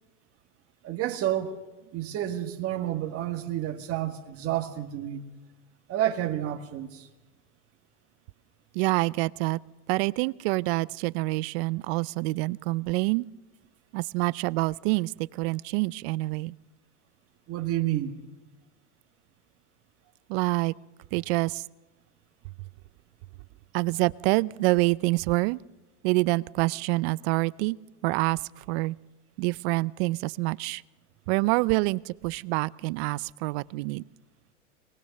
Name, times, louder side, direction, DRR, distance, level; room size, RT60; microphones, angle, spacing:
voice 1, 0.8-1.6 1.9-5.2 5.9-7.1 17.5-18.2, right 12 dB, 40° right, 1.8 m, -30 dB
voice 2, 8.7-9.6 9.9-13.3 13.9-16.5 20.3-20.7 21.1-21.6 23.7-25.6 26.0-27.8 28.0-29.0 29.4-30.8 31.3-34.0, right 23 dB, 55° right, 0.6 m, -26 dB
23.5 x 19.5 x 6.6 m
hypercardioid pair, 105°, 37 cm